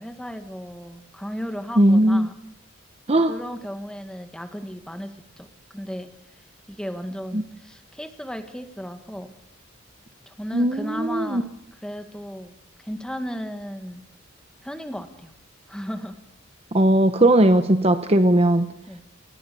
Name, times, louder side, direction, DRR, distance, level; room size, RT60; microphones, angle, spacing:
voice 1, 0.0-2.3 3.3-5.5 5.7-6.1 6.7-9.3 10.3-11.5 11.8-12.5 12.8-14.0 14.6-15.3 15.7-16.2 18.9-19.0, equal, 5° left, 7 dB, 1.8 m, -35 dB
voice 2, 1.8-2.3 3.1-3.3 7.3-7.4 10.5-11.4 16.7-18.7, right 1 dB, 30° right, 9 dB, 1.0 m, -18 dB
29.5 x 20.5 x 6.9 m, 0.79 s
head